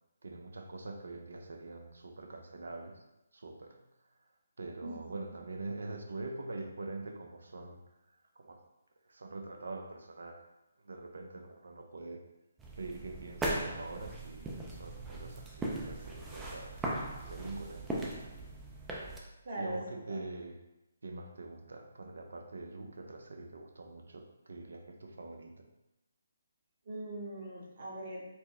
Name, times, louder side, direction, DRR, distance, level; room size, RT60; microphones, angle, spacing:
voice 1, 0.2-3.0 3.3-3.8 4.6-7.8 8.4-8.6 9.1-10.4 10.8-12.2 12.8-18.2 19.6-20.6 21.0-25.7, right 2 dB, 75° right, 3 dB, 0.5 m, -44 dB
sound 1, 12.6-19.2, right 2 dB, 10° right, 0.4 m, -39 dB
voice 2, 19.4-20.2 26.8-28.2, right 1 dB, 50° right, -4 dB, 1.1 m, -41 dB
4.3 x 2.1 x 3.0 m, 0.95 s
figure-of-eight pair, 150°, 0 cm